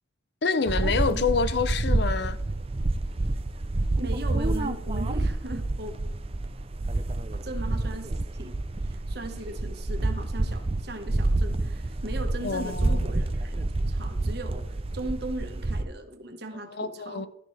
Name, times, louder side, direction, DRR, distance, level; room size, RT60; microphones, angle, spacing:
voice 1, 0.4-2.4 12.4-13.1 16.7-17.3, left 5 dB, 55° left, 0.6 m, -27 dB
sound 1, 0.7-15.8, right 2 dB, 30° right, 0.5 m, -28 dB
voice 2, 4.0-5.9 7.3-8.5 8.9-17.2, right 1 dB, 55° right, 1.4 m, -38 dB
13.0 x 10.5 x 3.3 m
head